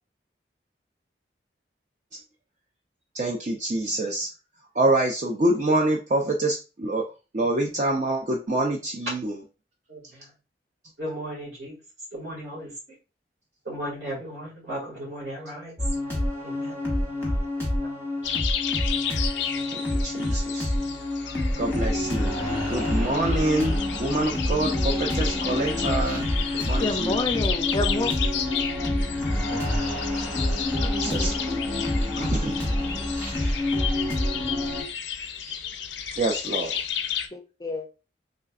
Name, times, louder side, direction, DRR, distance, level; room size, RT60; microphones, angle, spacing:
voice 1, 3.1-4.3 4.7-7.1 7.3-9.4 19.7-21.0 21.3-27.3 30.9-32.9 33.3-33.5 35.5-35.6 36.2-36.8, right 2 dB, 40° right, 0.4 m, -27 dB
voice 2, 9.9-10.3 11.0-11.8 12.1-12.7 13.7-15.7 16.4-16.8 17.2-17.3, equal, 65° right, 2.0 m, -36 dB
sound 1, 15.8-34.8, left 1 dB, 15° right, 1.3 m, -27 dB
sound 2, 18.2-37.3, left 9 dB, 85° left, 0.5 m, -33 dB
voice 3, 26.8-28.1 29.5-29.6 30.4-30.5 30.8-31.3 37.3-37.9, left 2 dB, 20° left, 0.4 m, -29 dB
3.8 x 3.2 x 2.4 m
head